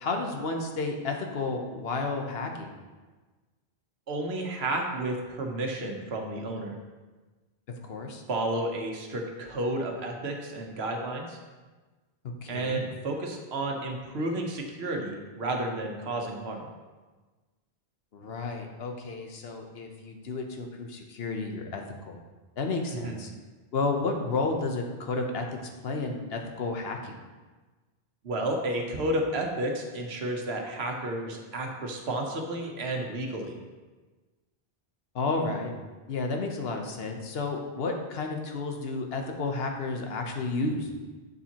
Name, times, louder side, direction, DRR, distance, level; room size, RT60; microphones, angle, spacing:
voice 1, 0.0-2.7 7.8-8.2 12.4-12.8 18.1-22.2 22.6-23.3 23.7-27.2 35.1-35.7 36.1-40.9, left 3 dB, 75° left, 3 dB, 1.1 m, -32 dB
voice 2, 4.1-6.8 8.3-11.4 12.5-16.7 22.9-23.2 28.2-33.6, right 1 dB, 80° right, 2 dB, 1.2 m, -31 dB
7.1 x 6.8 x 2.9 m, 1.3 s
omnidirectional pair, 1.0 m